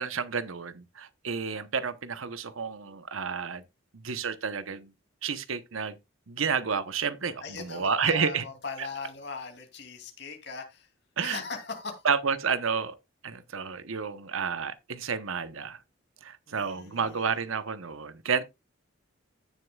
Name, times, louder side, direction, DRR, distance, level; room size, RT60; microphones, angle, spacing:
voice 1, 0.0-3.6 3.9-4.9 5.2-6.0 6.3-8.4 8.8-8.9 11.2-11.4 12.0-12.9 13.2-15.8 16.2-18.4, right 6 dB, 75° right, 0.9 m, -30 dB
voice 2, 7.4-10.9 11.2-12.0 16.5-17.4, left 4 dB, 55° left, 2.7 m, -39 dB
16.0 x 6.6 x 2.3 m
head